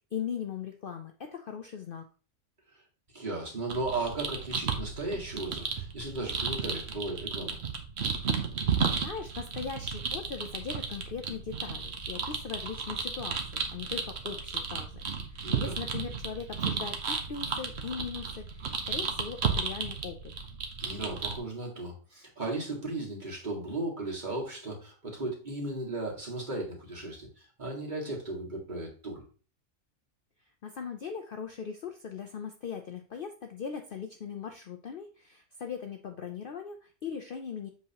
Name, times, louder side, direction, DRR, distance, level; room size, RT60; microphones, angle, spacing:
voice 1, 0.1-2.0 9.0-15.0 15.3-20.3 30.6-37.7, left 6 dB, 55° left, 5 dB, 0.7 m, -39 dB
voice 2, 3.1-7.6 15.4-15.7 20.8-29.2, right 2 dB, 35° right, -2 dB, 2.1 m, -36 dB
sound 1, 3.7-21.4, right 6 dB, 55° right, 1.2 m, -34 dB
7.6 x 5.6 x 2.9 m, 0.37 s
omnidirectional pair, 1.4 m